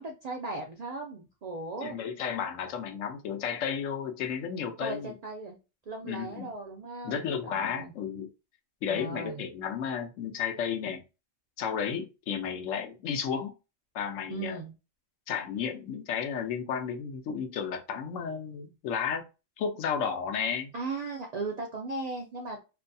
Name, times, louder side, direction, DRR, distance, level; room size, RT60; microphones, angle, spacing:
voice 1, 0.0-2.0 4.8-5.6 5.9-7.9 8.9-9.5 14.3-14.7 20.7-22.6, right 3 dB, 90° right, 1 dB, 0.3 m, -37 dB
voice 2, 1.8-5.1 6.0-6.5 7.0-8.3 8.8-11.0 11.6-13.5 13.9-14.6 15.3-19.2 19.6-20.7, left 7 dB, 90° left, 5 dB, 1.0 m, -33 dB
2.7 x 2.2 x 2.6 m, 0.29 s
omnidirectional pair, 1.3 m